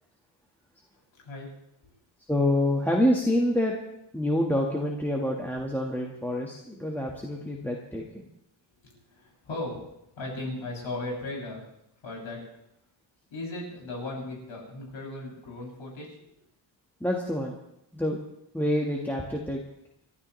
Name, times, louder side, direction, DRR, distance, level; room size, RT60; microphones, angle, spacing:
voice 1, 1.2-1.5 1.8-1.9 8.8-9.8 10.2-11.6 12.0-12.4 13.3-16.2, left 2 dB, 75° left, -3 dB, 7.0 m, -37 dB
voice 2, 2.3-3.8 4.1-8.2 17.0-17.5 17.9-18.2 18.5-19.6, left 1 dB, 5° left, -2 dB, 1.5 m, -27 dB
29.0 x 12.0 x 3.2 m, 0.79 s
wide cardioid pair, 150°, 48 cm